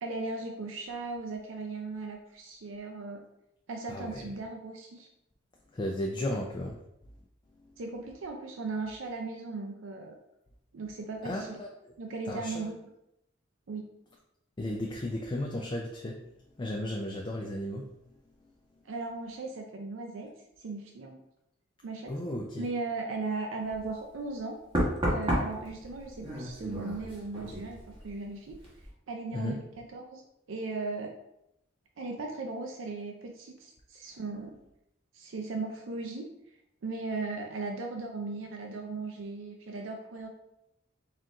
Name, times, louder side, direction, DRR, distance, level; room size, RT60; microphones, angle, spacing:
voice 1, 0.0-3.2 3.7-5.1 7.8-10.2 10.7-11.6 12.0-12.8 13.7-13.9 18.8-20.3 20.6-21.2 21.8-22.1 22.6-24.6 25.0-28.6 29.1-30.2 30.5-31.1 32.0-34.6 35.1-36.3 36.8-40.3, right 3 dB, 80° right, 3 dB, 0.4 m, -37 dB
voice 2, 3.9-4.3 5.7-6.8 7.6-7.8 11.2-11.7 12.3-12.7 14.6-16.2 16.6-17.9 22.1-22.7 29.3-29.6, left 1 dB, 25° left, 0 dB, 0.4 m, -34 dB
Knock, 23.7-23.9 24.7-28.2 28.5-28.9, equal, 25° right, 1.0 m, -32 dB
4.3 x 2.5 x 3.6 m, 0.83 s
head